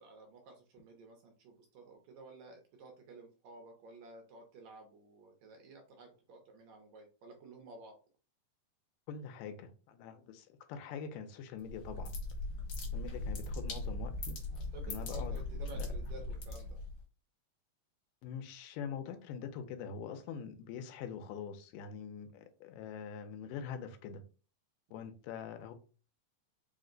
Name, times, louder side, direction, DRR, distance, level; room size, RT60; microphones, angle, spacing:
voice 1, 0.0-8.0 14.5-16.8 24.9-25.0, right 2 dB, 75° right, 1.8 m, -53 dB
voice 2, 9.1-12.1 12.9-14.4 14.9-15.4 15.7-15.9 18.2-24.2 24.9-25.7, left 7 dB, 85° left, 2.2 m, -44 dB
sound 1, 11.6-17.0, left 2 dB, 55° left, 1.6 m, -39 dB
5.1 x 2.1 x 3.7 m
omnidirectional pair, 3.8 m